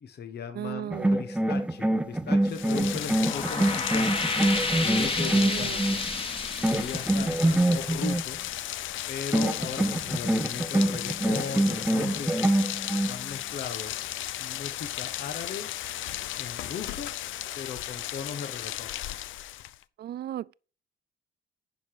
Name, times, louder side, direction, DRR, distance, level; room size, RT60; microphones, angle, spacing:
voice 1, 0.0-4.3 4.7-6.0 6.6-8.4 9.1-12.6 13.0-14.0 14.4-15.7 16.4-17.1 17.5-18.9, left 6 dB, 55° left, 1.4 m, -38 dB
voice 2, 0.5-1.1 5.2-5.8 20.0-20.5, right 12 dB, 55° right, 0.4 m, -35 dB
sound 1, 0.9-6.1 6.6-8.2 9.3-13.2, right 1 dB, 5° right, 0.8 m, -25 dB
Rain, 2.4-19.8, left 13 dB, 80° left, 0.6 m, -35 dB
sound 2, 3.1-8.3, left 3 dB, 25° left, 2.0 m, -31 dB
11.0 x 5.0 x 6.0 m
cardioid pair, 90°, 20 cm